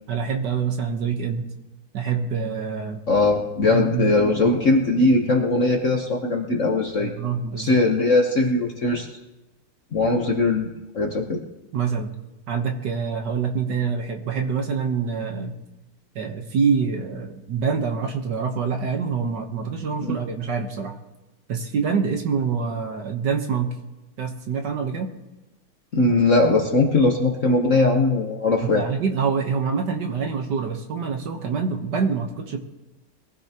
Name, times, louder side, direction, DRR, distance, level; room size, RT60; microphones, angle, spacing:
voice 1, 0.1-1.5 1.9-3.0 3.7-4.1 7.0-7.8 11.7-12.1 12.5-15.5 16.1-21.0 21.5-23.7 24.2-25.1 28.7-32.6, right 6 dB, 60° right, 4 dB, 1.5 m, -26 dB
voice 2, 3.1-7.1 7.6-9.1 9.9-10.7 10.9-11.4 20.1-20.2 25.9-28.9, left 2 dB, 45° left, 1 dB, 1.1 m, -20 dB
22.0 x 15.5 x 2.9 m, 1.0 s
omnidirectional pair, 2.4 m